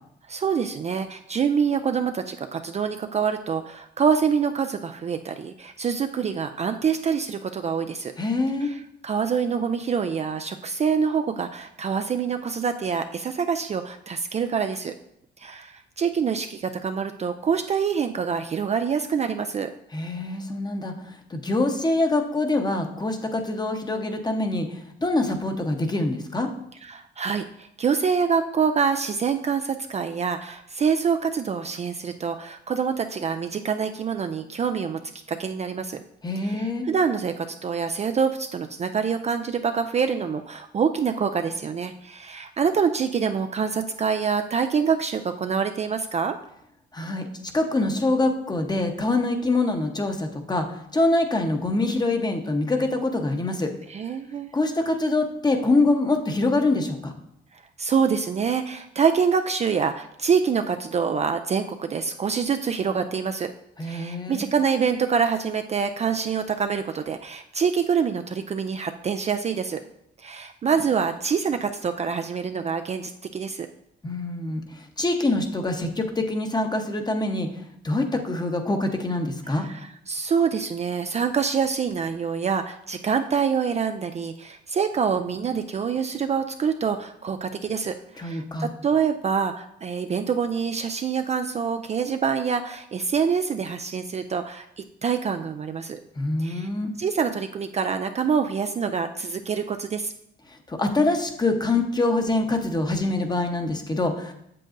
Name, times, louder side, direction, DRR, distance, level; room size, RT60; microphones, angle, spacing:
voice 1, 0.3-8.1 8.6-14.9 15.4-19.7 26.8-35.0 35.3-36.0 36.4-46.4 53.9-54.5 57.8-63.5 63.8-69.8 70.2-73.7 79.6-96.0 96.4-96.7 97.0-100.1, right 6 dB, 35° right, 7 dB, 0.4 m, -26 dB
voice 2, 8.2-8.7 19.9-20.9 21.3-26.5 36.2-36.9 46.9-47.3 47.5-53.7 54.5-57.1 63.8-64.4 74.0-77.5 77.8-79.7 88.2-88.7 96.2-96.9 100.5-104.3, left 2 dB, 20° left, 5 dB, 0.9 m, -25 dB
7.6 x 7.4 x 2.6 m, 0.75 s
cardioid pair, 90°, 20 cm